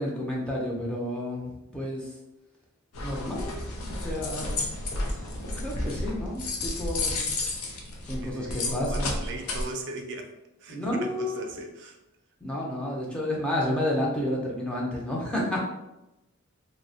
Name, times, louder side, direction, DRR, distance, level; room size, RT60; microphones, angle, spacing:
voice 1, 0.0-2.1 3.0-4.5 5.6-7.3 8.1-9.2 10.7-11.4 12.4-15.6, left 1 dB, 5° left, -4 dB, 0.4 m, -30 dB
sound 1, 2.9-9.6, left 2 dB, 80° left, 0.5 m, -32 dB
voice 2, 8.1-10.3 10.6-12.0, right 2 dB, 55° right, 3 dB, 0.4 m, -39 dB
2.6 x 2.1 x 2.6 m, 0.94 s
head